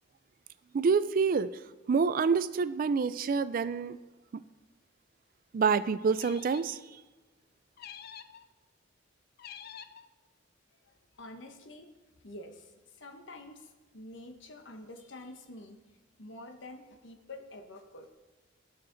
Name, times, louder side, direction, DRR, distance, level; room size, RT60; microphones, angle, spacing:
voice 1, 0.7-1.5 1.9-4.0 5.5-6.8, right 5 dB, 45° right, 15 dB, 0.3 m, -27 dB
sound 1, 6.1-6.8 7.8-8.4 9.4-10.1, left 8 dB, 50° left, 0.4 m, -47 dB
voice 2, 10.7-11.9 12.2-15.8 16.2-18.1, left 1 dB, 70° left, 5 dB, 1.0 m, -48 dB
12.5 x 6.7 x 3.9 m, 1.2 s
head